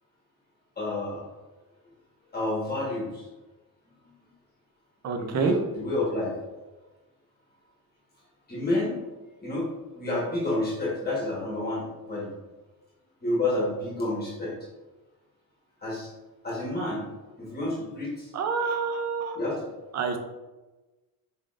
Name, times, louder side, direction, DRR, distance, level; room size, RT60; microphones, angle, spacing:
voice 1, 0.8-1.2 2.3-3.3 4.2-4.3 5.2-6.3 8.5-8.9 9.4-9.7 9.9-12.3 13.2-14.5 15.8-16.1 16.4-17.0 17.4-18.3 19.3-19.7, left 2 dB, 25° left, -6 dB, 1.3 m, -29 dB
voice 2, 5.0-5.6 18.3-19.6 19.9-20.2, right 5 dB, 45° right, 5 dB, 0.5 m, -28 dB
4.8 x 3.8 x 2.5 m, 1.1 s
cardioid pair, 175°, 38 cm